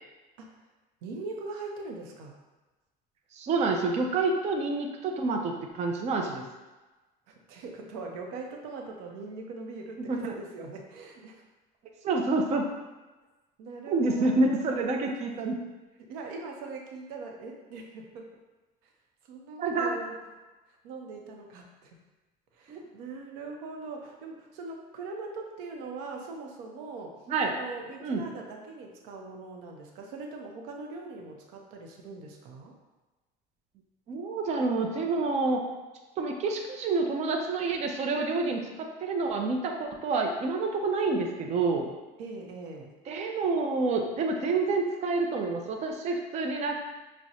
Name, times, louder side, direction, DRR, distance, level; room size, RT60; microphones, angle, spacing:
voice 1, 1.0-2.4 7.3-11.3 13.6-14.6 15.0-15.4 16.0-18.3 19.2-20.1 20.8-22.0 22.5-27.2 27.5-32.8 42.2-42.9, right 3 dB, 90° right, 2 dB, 0.6 m, -41 dB
voice 2, 3.3-6.4 10.1-10.3 12.0-12.7 13.9-15.6 19.6-19.9 22.7-22.8 27.3-27.6 28.0-28.2 34.1-35.6 36.2-41.9 43.1-46.7, right 3 dB, 35° right, 2 dB, 0.5 m, -28 dB
5.9 x 2.1 x 2.7 m, 1.2 s
cardioid pair, 130°, 19 cm